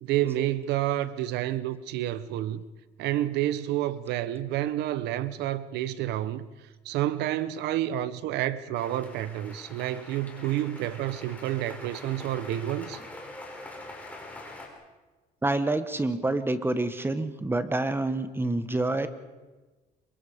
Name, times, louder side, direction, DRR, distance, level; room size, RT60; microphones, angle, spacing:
voice 1, 0.0-2.6 3.0-6.4 6.8-13.0, right 13 dB, 85° right, 0.9 m, -29 dB
sound 1, 8.7-14.7, left 2 dB, 10° left, 5.6 m, -44 dB
voice 2, 15.4-19.1, right 2 dB, 15° right, 1.4 m, -27 dB
27.0 x 24.0 x 5.1 m
cardioid pair, 110°, 17 cm